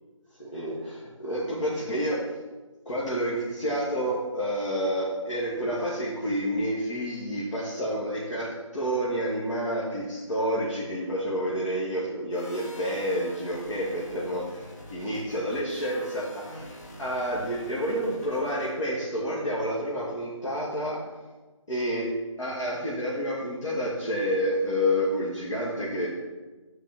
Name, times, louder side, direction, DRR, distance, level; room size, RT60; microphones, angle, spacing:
voice 1, 0.4-2.2 2.9-21.0 21.7-22.1 22.4-26.1, equal, 65° left, -7 dB, 2.2 m, -29 dB
sound 1, 12.3-18.9, left 1 dB, 30° left, 1.2 m, -45 dB
7.3 x 4.8 x 6.3 m, 1.2 s
figure-of-eight pair, 155°, 17 cm